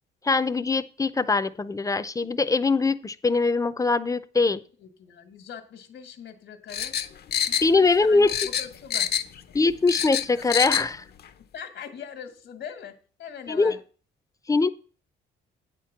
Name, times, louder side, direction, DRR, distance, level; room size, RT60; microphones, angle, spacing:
voice 1, 0.2-4.6 7.6-8.4 9.5-10.9 13.5-13.8 14.5-14.7, left 3 dB, 15° left, 14 dB, 0.6 m, -22 dB
voice 2, 4.4-6.9 7.7-9.1 10.3-10.7 11.5-13.8, left 7 dB, 75° left, 7 dB, 1.5 m, -42 dB
sound 1, 6.7-8.0 8.3-9.4 9.7-10.9 11.2-11.3, left 9 dB, 55° left, 0.7 m, -26 dB
8.8 x 4.6 x 7.1 m, 0.39 s
cardioid pair, 90°, 20 cm